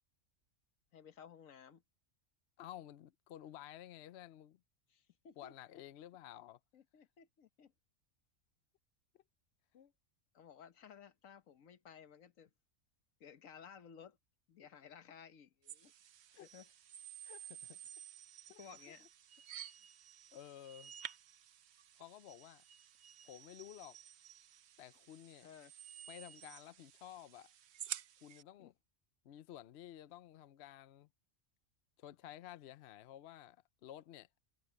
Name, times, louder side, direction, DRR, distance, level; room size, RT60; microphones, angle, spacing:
voice 1, 0.9-1.8 4.9-5.5 6.7-7.7 10.3-12.5 13.2-14.2 14.5-15.9 16.4-16.7 18.6-19.1 25.4-25.7 28.6-28.7, left 7 dB, 80° left, 1.5 m, -57 dB
voice 2, 2.6-4.6 5.4-6.6 9.7-9.9 16.3-16.5 17.2-17.8 18.5-18.6 20.3-20.9 22.0-22.6 23.2-24.0 24.8-25.5 26.1-27.5 28.2-28.7 29.2-31.1 32.0-33.6 33.8-34.3, left 12 dB, 60° left, 0.8 m, -53 dB
sound 1, 15.7-28.4, right 9 dB, 60° right, 0.9 m, -52 dB
omnidirectional pair, 1.4 m